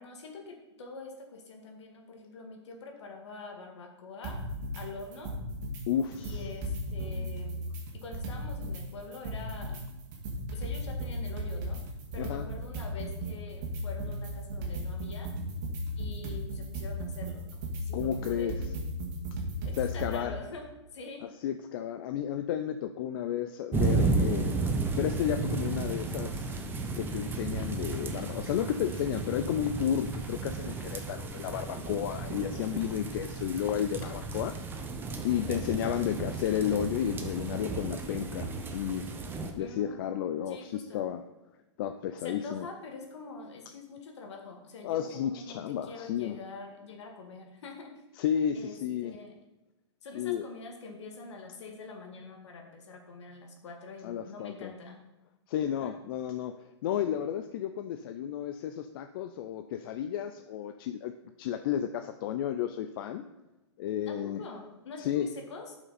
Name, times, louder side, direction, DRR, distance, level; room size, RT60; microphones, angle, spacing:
voice 1, 0.0-4.4 4.7-5.3 6.2-7.7 7.9-9.9 10.5-11.8 12.1-15.3 16.0-18.9 19.6-20.7 20.9-21.3 31.8-32.0 35.3-35.4 39.6-41.1 42.2-47.9 48.5-49.4 50.0-55.0 55.8-56.0 64.1-65.8, left 4 dB, 70° left, 3 dB, 1.9 m, -45 dB
sound 1, 4.2-4.8 5.1-5.8 6.1-8.8 9.1-20.2, equal, 45° right, 2.2 m, -36 dB
voice 2, 5.9-6.4 12.2-12.4 17.9-18.5 19.8-20.3 21.4-24.6 25.0-26.5 27.0-34.6 35.2-39.1 39.6-41.2 41.8-42.7 44.8-46.4 48.2-49.2 50.1-50.4 54.0-54.7 55.5-56.5 56.8-61.1 61.4-63.2 63.8-64.4 65.0-65.3, left 9 dB, 50° left, 8 dB, 0.5 m, -32 dB
sound 2, 23.7-39.5, right 3 dB, 15° right, 0.8 m, -33 dB
11.0 x 5.8 x 4.2 m, 1.0 s
hypercardioid pair, 135°, 15 cm